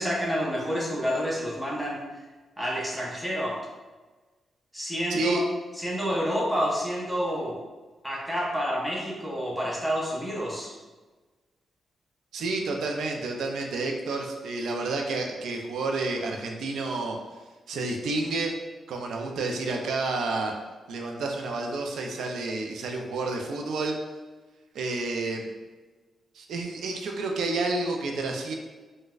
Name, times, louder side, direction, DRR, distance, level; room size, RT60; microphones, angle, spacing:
voice 1, 0.0-2.2 2.6-3.6 4.7-5.4 5.8-7.6 8.0-10.7, equal, ahead, -5 dB, 0.8 m, -29 dB
voice 2, 5.1-5.4 12.3-17.2 17.7-18.5 18.9-20.5 20.9-24.0 24.7-25.5 26.3-28.5, right 3 dB, 90° right, 2 dB, 0.4 m, -30 dB
3.9 x 2.1 x 2.3 m, 1.2 s
cardioid pair, 115°, 0 cm